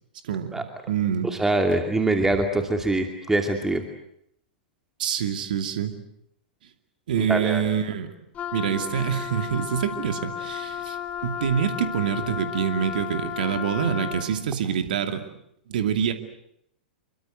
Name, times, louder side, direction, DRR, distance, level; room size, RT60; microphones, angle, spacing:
voice 1, 0.2-1.3 5.0-5.9 7.1-8.1 8.5-15.2 15.7-16.1, right 8 dB, 65° right, 7 dB, 2.6 m, -26 dB
voice 2, 1.4-3.8 7.2-7.6, right 2 dB, 10° right, 4 dB, 2.6 m, -23 dB
Wind instrument woodwind instrument, 8.3-14.3, left 9 dB, 25° left, 1.9 m, -33 dB
28.0 x 23.5 x 7.8 m, 0.73 s
hypercardioid pair, 105°, 5 cm